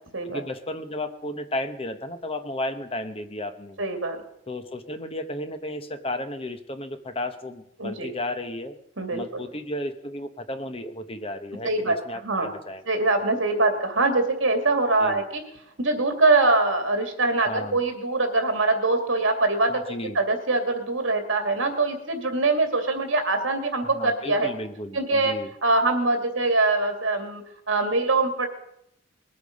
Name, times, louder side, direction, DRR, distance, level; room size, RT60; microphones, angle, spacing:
voice 1, 0.3-3.8 4.5-8.8 9.1-12.8 15.0-15.2 17.5-17.8 19.7-20.2 23.9-25.5, left 1 dB, 30° left, 8 dB, 0.9 m, -33 dB
voice 2, 3.8-4.2 7.8-8.1 9.0-9.4 11.6-12.0 12.2-12.5 12.9-15.4 15.8-24.5 24.9-25.3 25.6-28.5, right 3 dB, 75° right, 5 dB, 2.5 m, -23 dB
21.0 x 8.5 x 5.3 m, 0.74 s
head